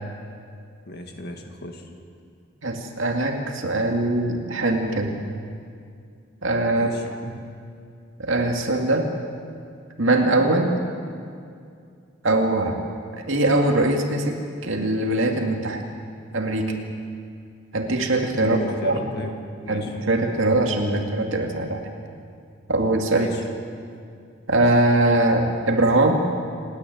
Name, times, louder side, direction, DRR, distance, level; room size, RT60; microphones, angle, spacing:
voice 1, 0.9-1.9 6.7-7.1 18.4-19.3 19.6-19.9 23.1-23.4, left 1 dB, 55° left, 4 dB, 2.0 m, -36 dB
voice 2, 2.6-5.2 6.4-6.9 7.2-7.4 8.2-9.1 10.0-10.8 12.2-12.8 13.2-15.8 16.3-16.8 17.7-19.3 19.7-21.8 22.7-23.3 24.5-26.3, right 2 dB, 70° right, 2 dB, 2.2 m, -22 dB
28.5 x 9.6 x 9.5 m, 2.4 s
head